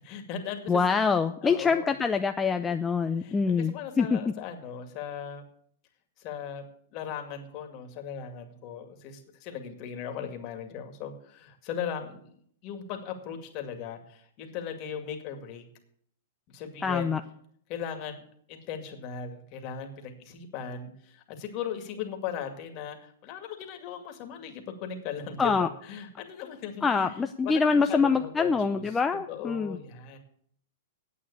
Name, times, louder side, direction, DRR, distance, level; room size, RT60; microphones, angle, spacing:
voice 1, 0.0-1.0 1.4-1.9 2.6-2.7 3.2-5.4 6.2-6.6 6.9-12.3 12.6-15.6 16.5-17.2 17.7-18.2 18.5-28.8 29.3-30.2, left 8 dB, 40° left, 5 dB, 2.2 m, -38 dB
voice 2, 0.7-4.2 16.8-17.2 25.4-25.7 26.8-29.8, left 5 dB, 10° left, 6 dB, 0.5 m, -25 dB
9.6 x 8.4 x 8.5 m, 0.65 s
hypercardioid pair, 145°, 0 cm